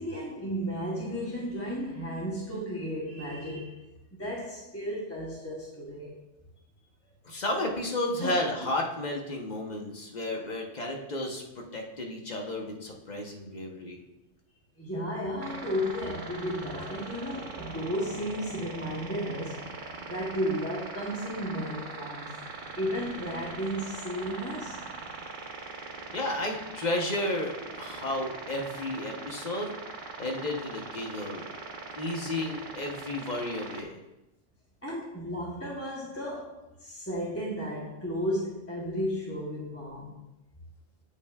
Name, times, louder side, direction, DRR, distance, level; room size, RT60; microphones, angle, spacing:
voice 1, 0.0-3.8 4.1-6.2 8.2-8.4 14.8-19.6 20.0-22.3 22.8-24.8 34.8-40.2, equal, 15° left, -5 dB, 0.8 m, -34 dB
voice 2, 7.2-14.0 26.1-29.7 30.2-31.5 32.0-34.0, left 1 dB, 40° left, 1 dB, 0.9 m, -32 dB
sound 1, 15.4-33.8, right 3 dB, 45° right, 0.8 m, -41 dB
8.5 x 5.5 x 2.3 m, 0.96 s
omnidirectional pair, 1.3 m